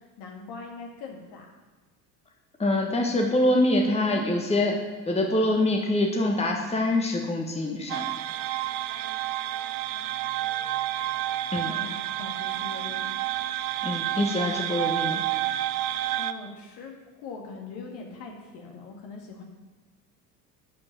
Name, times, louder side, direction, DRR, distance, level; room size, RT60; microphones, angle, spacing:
voice 1, 0.2-1.5 9.9-10.3 11.7-13.0 16.1-17.0 17.2-19.4, left 4 dB, 55° left, 1 dB, 2.1 m, -42 dB
voice 2, 2.6-4.8 5.0-8.0 11.5-11.7 13.8-15.2, left 1 dB, 10° left, 1 dB, 1.4 m, -25 dB
sound 1, 7.9-16.3, right 13 dB, 50° right, 0.6 m, -29 dB
12.0 x 5.2 x 5.7 m, 1.3 s
figure-of-eight pair, 60°, 50 cm